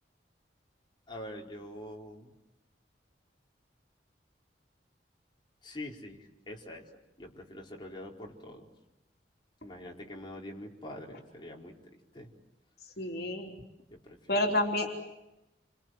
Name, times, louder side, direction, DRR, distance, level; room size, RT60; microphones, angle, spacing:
voice 1, 1.1-2.3 5.6-6.9 7.2-8.7 9.6-12.3 13.9-14.7, left 1 dB, 25° left, 0 dB, 4.5 m, -45 dB
voice 2, 13.0-13.5 14.3-14.9, left 1 dB, 60° left, 2 dB, 3.6 m, -29 dB
30.0 x 25.5 x 7.8 m, 0.93 s
head